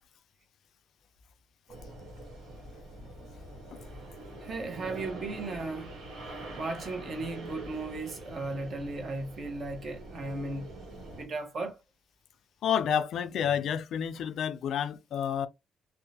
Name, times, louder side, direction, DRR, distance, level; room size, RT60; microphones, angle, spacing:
sound 1, 1.7-11.3, right 2 dB, 90° right, 1.1 m, -44 dB
voice 1, 4.4-5.9 6.6-10.7 11.1-11.7, right 3 dB, 50° right, 0.9 m, -36 dB
voice 2, 12.6-15.5, left 8 dB, 70° left, 0.3 m, -29 dB
2.6 x 2.1 x 2.7 m
cardioid pair, 90°, 0 cm